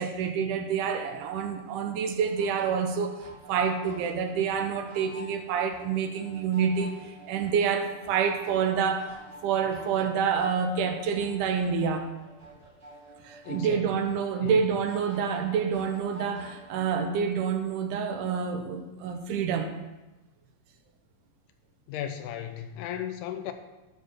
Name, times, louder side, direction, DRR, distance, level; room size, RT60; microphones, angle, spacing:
voice 1, 0.0-3.2 3.5-9.2 9.4-12.1 13.2-19.8, right 6 dB, 80° right, 6 dB, 2.2 m, -28 dB
sound 1, 2.2-16.9, equal, 20° right, 2.1 m, -49 dB
voice 2, 13.4-14.0 14.4-14.7 21.9-23.5, left 10 dB, 80° left, 8 dB, 2.1 m, -36 dB
12.0 x 4.6 x 6.2 m, 1.1 s
omnidirectional pair, 3.9 m